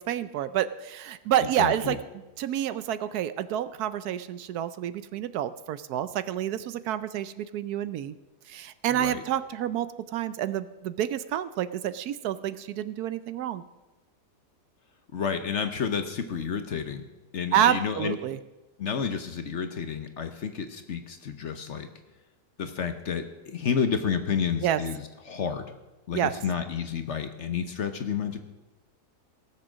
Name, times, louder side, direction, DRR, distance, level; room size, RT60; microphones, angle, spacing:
voice 1, 0.0-2.0 2.4-8.1 8.5-9.9 10.1-13.6 17.5-18.4 24.6-24.8 26.1-26.3, right 11 dB, 75° right, 13 dB, 1.1 m, -28 dB
voice 2, 1.6-2.0 8.9-9.2 15.1-17.0 17.3-18.2 18.8-21.9 22.6-25.7 26.1-28.4, left 6 dB, 50° left, 8 dB, 1.0 m, -30 dB
17.5 x 7.6 x 6.2 m, 1.1 s
omnidirectional pair, 1.7 m